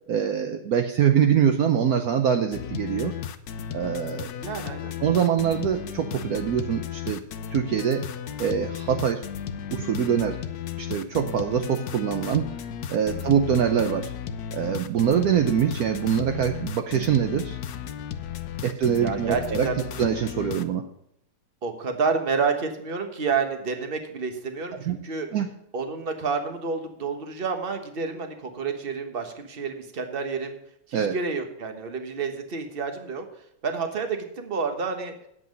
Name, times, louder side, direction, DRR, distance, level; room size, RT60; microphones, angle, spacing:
voice 1, 0.1-3.1 3.7-4.3 5.0-7.2 7.5-8.1 8.4-9.2 9.7-10.5 10.8-12.5 12.9-14.1 14.5-17.6 18.6-19.7 20.0-20.9 24.9-25.0 25.3-25.6 30.9-31.1, right 8 dB, 70° right, 6 dB, 0.8 m, -24 dB
sound 1, 2.5-20.6, left 8 dB, 70° left, 0.9 m, -35 dB
voice 2, 4.4-4.9 13.1-13.2 19.0-19.8 21.6-25.3 25.7-30.6 30.9-33.2 33.6-35.1, right 5 dB, 35° right, 6 dB, 1.1 m, -29 dB
9.5 x 8.1 x 5.3 m, 0.75 s
omnidirectional pair, 2.4 m